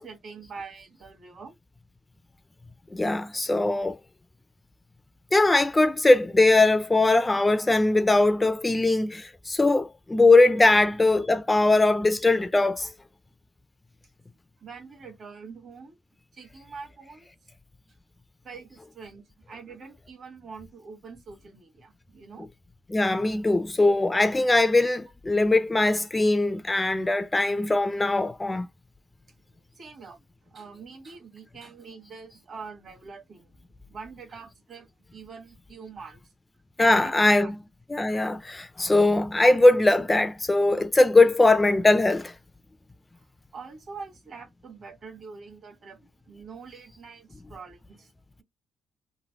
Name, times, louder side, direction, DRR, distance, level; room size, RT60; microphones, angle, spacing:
voice 1, 0.0-1.5 10.5-10.7 14.6-16.0 16.3-17.3 18.4-22.5 29.8-33.5 33.9-36.2 36.8-37.5 43.2-43.3 43.5-48.1, right 5 dB, 55° right, 1.2 m, -44 dB
voice 2, 2.9-4.0 5.3-12.9 22.9-28.7 36.8-37.6 37.9-42.3, left 2 dB, 15° left, 0.3 m, -21 dB
3.1 x 2.1 x 2.7 m
cardioid pair, 90°, 0 cm